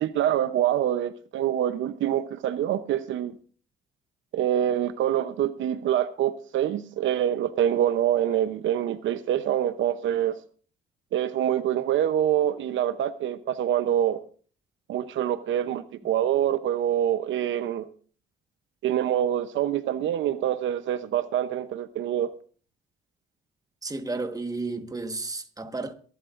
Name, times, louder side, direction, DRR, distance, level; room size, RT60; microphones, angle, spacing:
voice 1, 0.0-3.3 4.3-10.3 11.1-14.2 14.9-17.9 18.8-22.3, right 11 dB, 75° right, 0.8 m, -25 dB
voice 2, 23.8-25.9, right 3 dB, 20° right, 1.4 m, -32 dB
22.5 x 11.5 x 2.6 m
cardioid pair, 90°, 20 cm